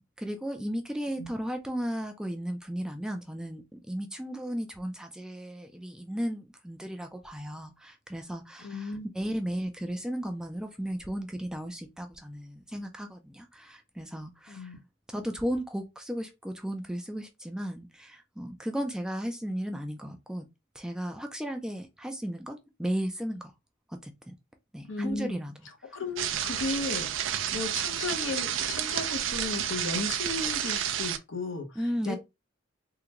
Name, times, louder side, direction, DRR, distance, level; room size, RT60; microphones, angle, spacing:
voice 1, 0.0-14.7 15.1-20.5 20.7-23.5 23.9-24.3 24.7-25.7 31.8-32.2, equal, 5° right, 0.4 m, -35 dB
voice 2, 8.6-9.1 14.5-14.8 24.9-25.4 25.8-32.2, left 3 dB, 75° left, 0.8 m, -35 dB
sound 1, 26.2-31.2, right 10 dB, 75° right, 0.4 m, -30 dB
3.7 x 2.2 x 2.9 m
head